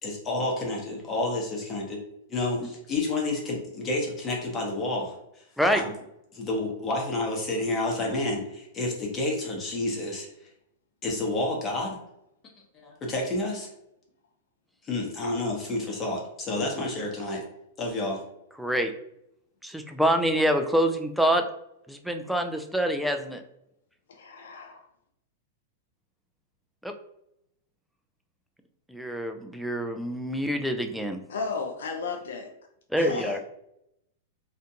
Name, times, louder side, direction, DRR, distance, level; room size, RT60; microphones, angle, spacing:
voice 1, 0.0-2.0 2.3-5.5 5.7-5.9 6.3-10.3 11.0-12.0 12.8-13.7 14.8-17.4 17.8-18.2, left 2 dB, 25° left, -1 dB, 0.9 m, -29 dB
voice 2, 18.6-18.9 19.6-21.4 21.9-23.4 26.8-26.9 28.9-31.2 32.9-33.4, equal, ahead, 5 dB, 0.3 m, -26 dB
voice 3, 24.2-24.8 31.3-32.5 33.0-33.4, left 4 dB, 80° left, 2 dB, 0.4 m, -34 dB
2.5 x 2.1 x 2.8 m, 0.79 s
hypercardioid pair, 125°, 0 cm